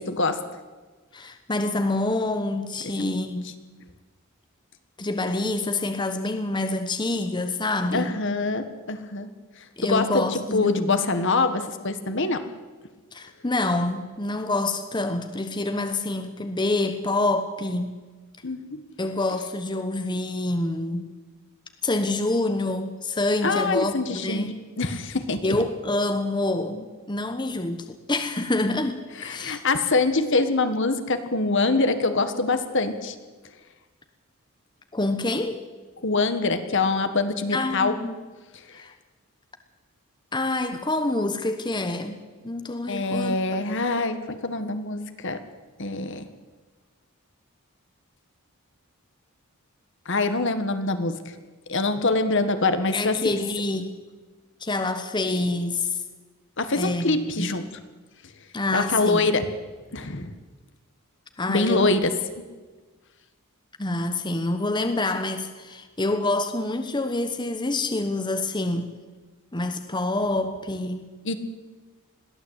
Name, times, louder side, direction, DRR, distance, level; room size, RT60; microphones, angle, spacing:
voice 1, 0.1-0.4 7.9-9.3 9.8-12.5 18.4-18.8 23.4-25.6 29.2-33.1 36.0-37.9 42.9-45.4 45.8-46.2 50.0-51.2 51.7-53.3 56.6-57.6 58.7-59.4 59.9-60.3 61.5-62.1 71.2-71.4, left 3 dB, 55° left, 9 dB, 1.6 m, -24 dB
voice 2, 1.1-3.5 5.0-8.2 9.8-11.0 13.1-17.9 19.0-21.1 21.8-24.6 25.4-29.6 34.9-35.6 37.5-38.2 38.7-38.9 40.3-42.2 42.4-43.4 52.9-54.0 54.6-56.0 56.7-57.5 58.5-59.4 61.4-61.9 63.8-68.9 69.5-71.1, left 2 dB, 20° left, 7 dB, 1.1 m, -27 dB
21.5 x 15.5 x 8.2 m, 1.3 s
head